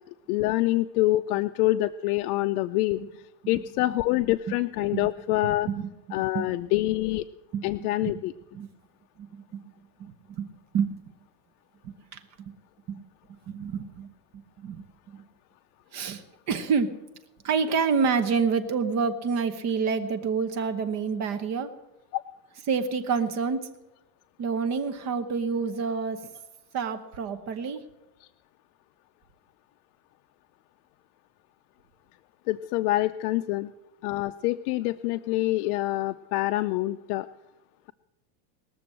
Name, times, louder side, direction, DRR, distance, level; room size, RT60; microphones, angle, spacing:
voice 1, 0.3-3.0 3.5-5.7 6.1-7.2 7.6-8.3 22.1-22.2 32.5-33.7 34.0-37.3, left 17 dB, 65° left, 8 dB, 0.5 m, -26 dB
voice 2, 5.7-6.5 7.5-7.6 8.0-8.2 8.5-8.7 9.2-9.6 10.0-10.5 10.7-11.0 11.8-12.2 12.9-13.0 13.5-14.1 14.3-14.8 15.9-16.9 17.4-21.7 22.7-23.6 24.4-26.2 26.7-27.8, right 5 dB, 35° right, 9 dB, 1.0 m, -28 dB
20.0 x 6.9 x 7.6 m, 0.99 s
supercardioid pair, 155°, 49 cm